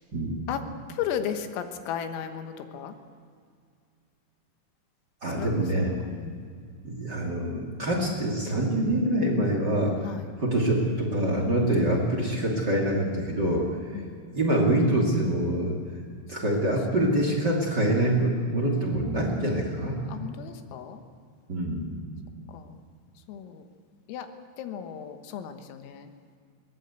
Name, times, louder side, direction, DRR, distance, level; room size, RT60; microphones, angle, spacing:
voice 1, 0.1-0.4 5.2-5.9 6.8-9.9 10.4-13.7 14.3-15.7 16.3-20.0 21.5-21.9, right 1 dB, 35° right, 1 dB, 1.8 m, -25 dB
voice 2, 0.9-2.9 5.4-5.7 6.0-6.5 10.0-10.3 11.7-12.1 13.9-14.2 16.4-16.6 16.9-17.0 20.1-21.0 22.5-22.8 23.3-23.7 24.1-24.3 24.6-26.1, left 8 dB, 80° left, 7 dB, 4.0 m, -35 dB
22.0 x 19.0 x 8.3 m, 2.2 s
omnidirectional pair, 5.9 m